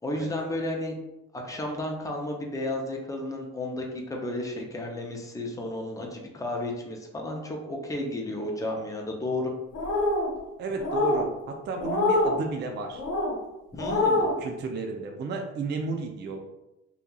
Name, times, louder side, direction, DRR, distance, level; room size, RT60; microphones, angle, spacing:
voice 1, 0.0-1.0 1.3-9.5 13.7-14.3, left 1 dB, 10° left, 0 dB, 0.5 m, -32 dB
sound 1, 9.7-10.3 10.8-11.2 11.8-12.4 12.9-13.3 13.8-14.3, left 2 dB, 60° left, 0.9 m, -24 dB
voice 2, 10.6-13.0 14.4-16.4, right 3 dB, 40° right, 3 dB, 0.4 m, -33 dB
2.9 x 2.4 x 2.3 m, 0.94 s
cardioid pair, 90°, 29 cm